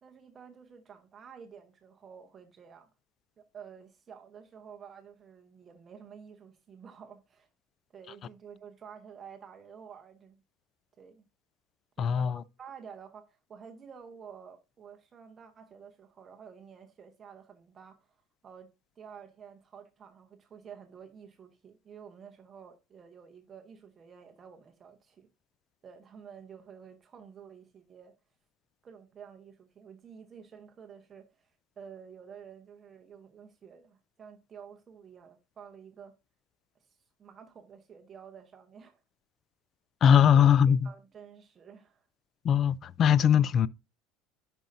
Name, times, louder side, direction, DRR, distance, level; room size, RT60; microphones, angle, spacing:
voice 1, 0.0-2.9 3.4-7.5 7.9-10.4 11.0-11.3 12.0-18.2 18.4-18.7 19.0-25.3 25.8-28.1 28.8-31.5 31.8-36.1 36.7-36.9 37.2-39.0 40.3-40.5 40.8-42.1, right 7 dB, 25° right, 0.9 m, -50 dB
voice 2, 12.0-12.4 40.0-40.9 42.4-43.7, left 8 dB, 35° left, 0.3 m, -21 dB
10.0 x 5.4 x 2.6 m
cardioid pair, 145°, 0 cm